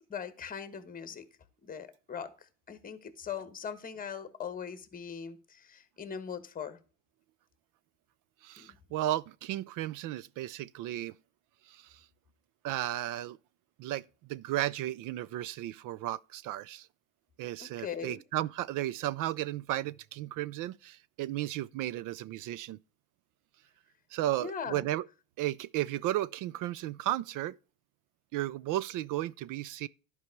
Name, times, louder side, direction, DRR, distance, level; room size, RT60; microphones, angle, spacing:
voice 1, 0.1-1.2 1.6-6.8 8.6-8.8 17.6-18.2 24.4-24.9, left 7 dB, 20° left, 1.2 m, -40 dB
voice 2, 8.4-11.1 11.7-12.0 12.6-13.4 13.8-14.0 14.3-16.9 17.4-22.8 24.1-25.0 25.4-27.6 28.3-29.9, right 14 dB, 50° right, 0.4 m, -34 dB
11.5 x 5.4 x 4.5 m
cardioid pair, 135°, 41 cm